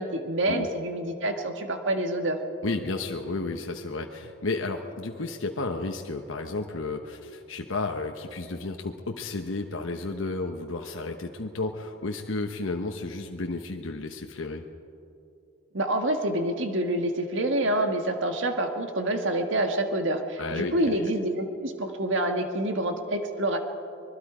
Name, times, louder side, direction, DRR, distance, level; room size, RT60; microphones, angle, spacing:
voice 1, 0.0-2.4 15.7-23.6, right 1 dB, 70° right, 5 dB, 1.7 m, -27 dB
voice 2, 2.6-14.6 20.4-21.0, left 3 dB, 80° left, 3 dB, 1.0 m, -32 dB
24.5 x 21.5 x 5.0 m, 2.7 s
head